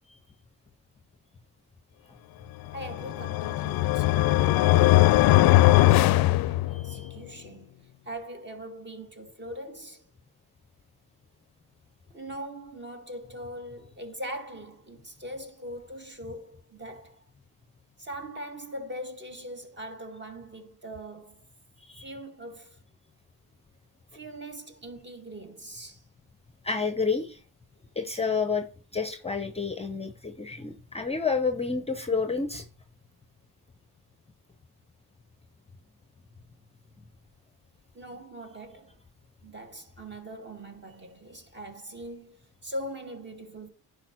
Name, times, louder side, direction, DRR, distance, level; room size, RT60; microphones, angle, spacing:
voice 1, 2.7-10.1 12.1-17.2 18.0-21.4 22.0-22.8 24.1-26.0 37.9-39.0 39.4-43.7, right 1 dB, 25° right, 2.0 m, -41 dB
sound 1, 2.8-7.1, left 16 dB, 65° left, 0.5 m, -20 dB
voice 2, 6.7-7.1 21.8-22.1 26.6-27.4 28.0-28.7 28.9-32.6, left 5 dB, 15° left, 0.7 m, -29 dB
10.5 x 5.0 x 4.4 m
cardioid pair, 100°, 39 cm